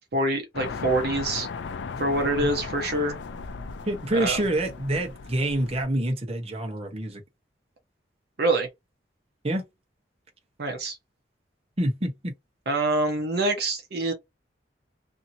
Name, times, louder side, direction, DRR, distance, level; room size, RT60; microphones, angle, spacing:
voice 1, 0.1-1.5 2.0-3.2 4.1-4.4 8.4-8.7 10.6-11.0 12.7-14.1, right 2 dB, 60° right, 0.7 m, -25 dB
sound 1, 0.5-5.8, left 4 dB, 80° left, 0.4 m, -36 dB
voice 2, 3.9-7.2 9.4-9.6 11.8-12.3, right 1 dB, 35° right, 0.9 m, -27 dB
2.7 x 2.6 x 2.6 m
head